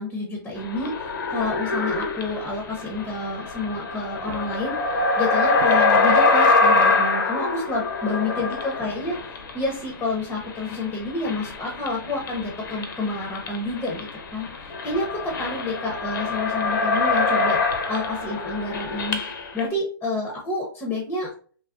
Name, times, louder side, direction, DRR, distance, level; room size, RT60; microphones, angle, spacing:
voice 1, 0.0-19.2 19.5-21.3, left 2 dB, 10° left, 0 dB, 0.6 m, -29 dB
sound 1, 0.6-10.1 10.4-19.6, left 3 dB, 60° left, 0.7 m, -24 dB
3.4 x 2.2 x 2.4 m, 0.43 s
figure-of-eight pair, 125°, 12 cm